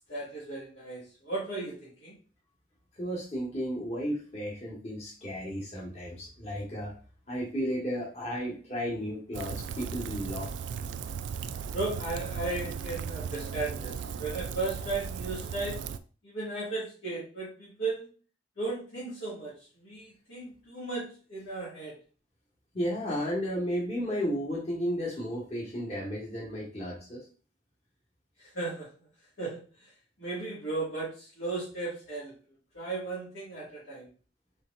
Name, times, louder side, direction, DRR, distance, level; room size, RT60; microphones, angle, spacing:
voice 1, 0.1-2.1 11.7-15.8 16.2-18.1 18.6-21.9 28.4-28.9 29.4-29.6 30.2-32.3 32.7-34.1, right 3 dB, 85° left, -9 dB, 2.0 m, -35 dB
voice 2, 3.0-6.9 7.3-10.6 22.7-27.2, equal, 35° left, -4 dB, 1.4 m, -33 dB
Rain, 9.3-16.0, right 6 dB, 70° right, 0.3 m, -37 dB
4.3 x 3.9 x 2.5 m, 0.38 s
head